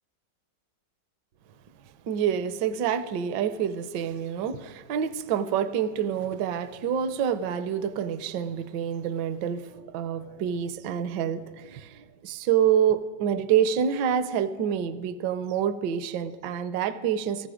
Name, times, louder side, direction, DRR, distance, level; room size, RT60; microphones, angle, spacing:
voice 1, 2.1-17.5, right 8 dB, 75° right, 13 dB, 1.3 m, -27 dB
18.0 x 14.5 x 4.9 m, 1.5 s
omnidirectional pair, 2.0 m